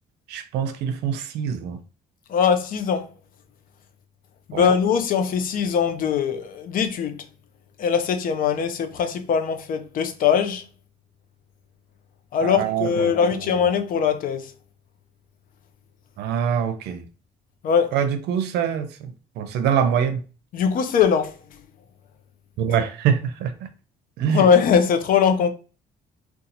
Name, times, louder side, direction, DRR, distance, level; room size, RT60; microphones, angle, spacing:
voice 1, 0.3-1.8 4.5-4.7 12.4-13.6 16.2-17.1 17.9-20.2 22.6-23.5 24.2-24.5, right 8 dB, 80° right, 0.6 m, -24 dB
voice 2, 2.3-3.1 4.5-7.2 7.8-10.6 12.3-14.5 17.6-17.9 20.5-21.4 24.3-25.5, left 7 dB, 55° left, 0.6 m, -21 dB
2.8 x 2.3 x 3.9 m
cardioid pair, 110°, 17 cm